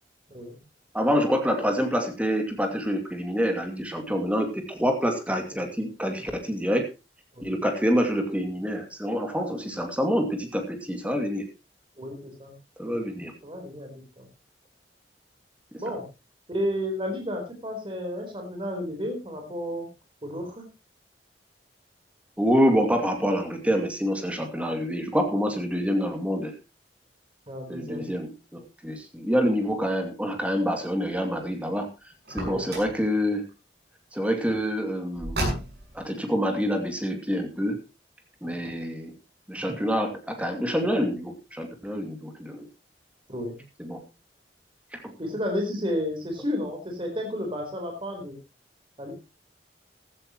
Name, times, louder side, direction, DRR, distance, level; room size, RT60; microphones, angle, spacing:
voice 1, 0.9-6.9 7.4-11.5 12.8-13.3 22.4-26.5 27.7-31.9 32.3-33.4 34.1-35.4 35.9-37.8 38.4-39.1 39.5-42.7 43.8-44.0, equal, 10° right, 5 dB, 2.5 m, -26 dB
voice 2, 12.0-12.5 12.8-13.0 13.4-14.3 15.8-16.0 16.5-19.9 20.2-20.6 27.5-28.1 32.4-32.7 38.5-38.6 43.3-43.6 45.2-48.4 49.0-49.1, equal, 30° right, 3 dB, 4.2 m, -32 dB
Car, 32.2-33.0 35.1-36.0, right 1 dB, 65° right, 7.3 m, -31 dB
15.0 x 13.5 x 3.1 m, 0.28 s
head